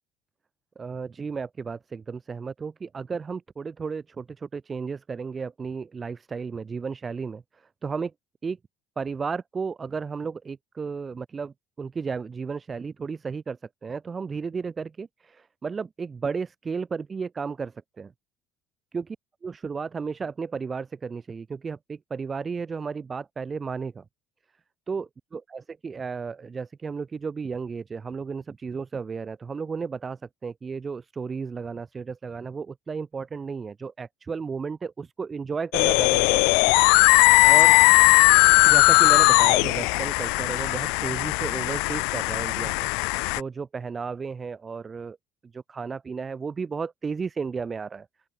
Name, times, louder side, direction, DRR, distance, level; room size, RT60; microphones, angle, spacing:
voice 1, 0.8-8.1 8.4-8.6 9.0-18.1 18.9-19.1 19.4-24.0 24.9-36.7 37.4-37.8 38.6-42.9 43.3-45.2 45.5-48.1, right 5 dB, 30° right, 6.4 m, -33 dB
sound 1, 35.7-43.4, left 35 dB, 80° left, 0.7 m, -18 dB
open air
hypercardioid pair, 75°, 0 cm